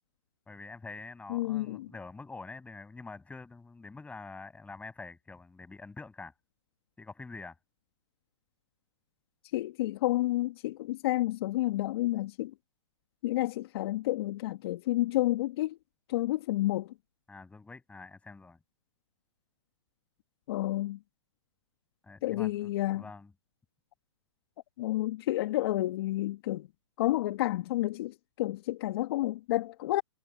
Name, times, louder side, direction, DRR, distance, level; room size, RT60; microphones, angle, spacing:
voice 1, 0.5-6.3 7.0-7.6 17.3-18.6 22.0-23.3, left 3 dB, 10° left, 7.0 m, -46 dB
voice 2, 1.3-1.9 9.5-12.5 13.2-15.8 16.1-16.9 20.5-21.0 22.2-23.0 24.8-26.7 27.0-30.0, left 16 dB, 50° left, 2.0 m, -30 dB
hypercardioid pair, 125°, 16 cm